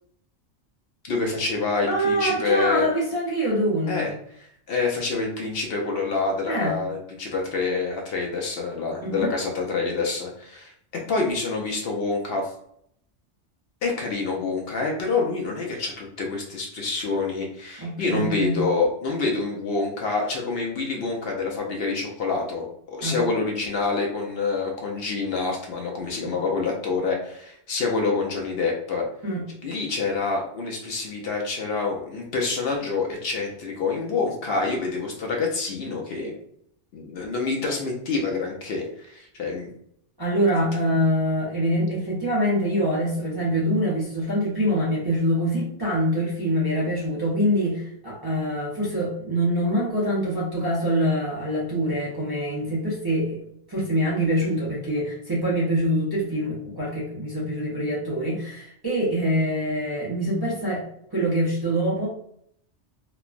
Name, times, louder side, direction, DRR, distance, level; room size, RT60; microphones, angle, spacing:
voice 1, 1.0-2.9 3.9-12.5 13.8-29.0 29.6-36.4 36.9-39.7, left 4 dB, 65° left, 0 dB, 0.7 m, -27 dB
voice 2, 1.8-4.1 6.5-6.8 9.0-9.3 17.8-18.6 23.0-23.3 26.2-26.3 29.2-29.4 40.2-53.4 53.7-60.8 61.1-62.1, equal, 25° right, -8 dB, 0.6 m, -25 dB
3.1 x 2.1 x 2.4 m, 0.70 s
omnidirectional pair, 1.2 m